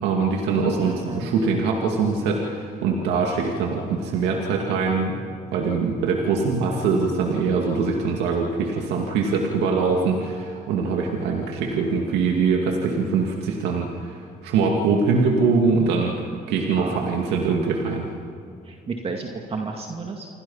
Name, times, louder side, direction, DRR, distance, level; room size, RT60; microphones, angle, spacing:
voice 1, 0.0-5.2 5.5-18.1, right 4 dB, 85° right, 1 dB, 2.3 m, -23 dB
voice 2, 0.7-1.4 16.8-17.0 18.7-20.3, right 4 dB, 35° right, 2 dB, 2.2 m, -32 dB
28.0 x 24.5 x 5.7 m, 2.4 s
cardioid pair, 110°, 17 cm